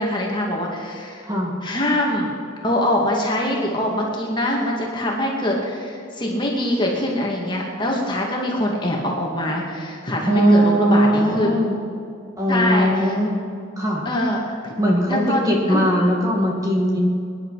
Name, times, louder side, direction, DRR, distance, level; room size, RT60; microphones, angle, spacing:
voice 1, 0.0-1.3 1.6-2.3 2.6-11.6 12.5-13.2 14.0-14.7 15.1-15.8, left 1 dB, 20° left, -2 dB, 2.2 m, -23 dB
voice 2, 10.3-11.8 12.4-13.4 13.8-14.0 14.8-17.0, equal, 15° right, -2 dB, 2.4 m, -19 dB
23.5 x 10.5 x 4.9 m, 2.5 s
head